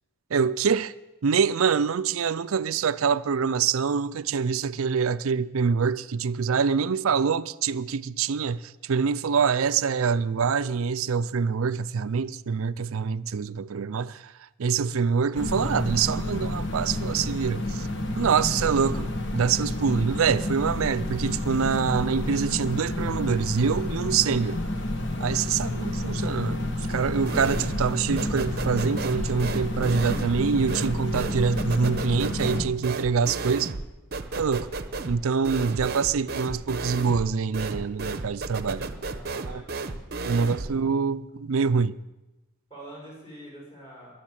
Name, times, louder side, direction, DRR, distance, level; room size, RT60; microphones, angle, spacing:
voice 1, 0.3-0.9 1.2-14.3 14.6-17.9 18.2-19.1 19.3-24.6 25.2-33.7 34.4-34.7 35.1-39.0 39.5-39.6 40.2-42.0, right 6 dB, 75° right, 0.5 m, -25 dB
sound 1, 15.3-32.6, left 1 dB, 55° left, 1.4 m, -30 dB
voice 2, 18.4-19.0 38.9-40.0 40.3-40.9 42.7-44.1, right 1 dB, 25° left, 6.8 m, -46 dB
sound 2, 27.3-27.9 28.2-40.8, right 3 dB, 45° right, 0.8 m, -33 dB
21.5 x 7.1 x 7.4 m
head